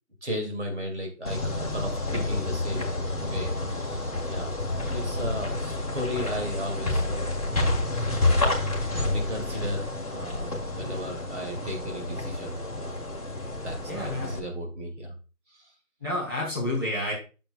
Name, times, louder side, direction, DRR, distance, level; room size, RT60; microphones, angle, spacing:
voice 1, 0.2-2.9 3.2-4.6 4.9-7.4 7.7-8.6 9.0-13.0 13.6-15.1 15.5-15.7, equal, 55° right, 2 dB, 2.5 m, -35 dB
sound 1, 1.2-14.4, left 2 dB, 25° left, 1.7 m, -29 dB
voice 2, 13.9-14.3 16.0-17.1, left 1 dB, 15° right, -6 dB, 2.3 m, -30 dB
9.0 x 6.9 x 2.3 m, 0.34 s
figure-of-eight pair, 175°, 42 cm